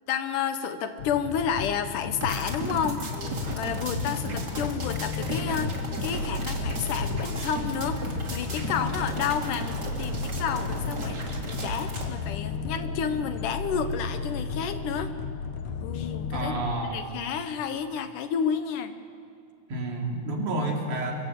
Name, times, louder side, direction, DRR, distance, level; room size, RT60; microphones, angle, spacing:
voice 1, 0.1-11.2 11.5-15.1 15.8-16.5 16.8-18.9, left 7 dB, 85° left, 9 dB, 2.8 m, -31 dB
sound 1, 1.0-16.8, left 5 dB, 70° left, 2.2 m, -34 dB
sound 2, 2.2-12.1, right 1 dB, 35° right, 3.0 m, -34 dB
voice 2, 16.3-17.1 19.7-21.1, right 2 dB, 75° right, 0 dB, 4.7 m, -30 dB
25.0 x 24.5 x 7.8 m, 2.3 s
omnidirectional pair, 3.5 m